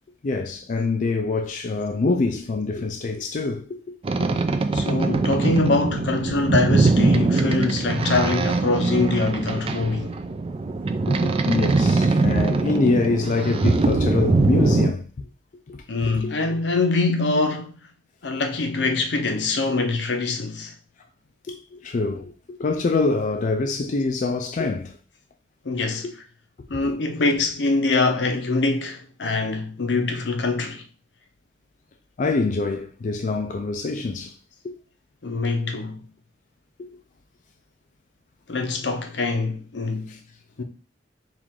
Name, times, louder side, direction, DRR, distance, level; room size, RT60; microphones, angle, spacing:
voice 1, 0.2-4.4 4.8-4.9 6.3-6.4 11.1-15.1 15.7-16.3 21.5-25.0 26.6-26.8 32.2-34.3 34.6-34.7 36.8-37.0 40.1-40.2, left 3 dB, 45° left, 0.4 m, -25 dB
Boat Water vehicle, 4.0-14.9, right 3 dB, 30° right, 0.4 m, -22 dB
voice 2, 4.7-10.1 15.9-17.8 18.2-20.7 25.6-26.1 26.7-30.8 35.2-36.0 38.5-40.2 40.6-40.7, left 3 dB, 75° left, 0.7 m, -24 dB
4.6 x 2.5 x 3.6 m
head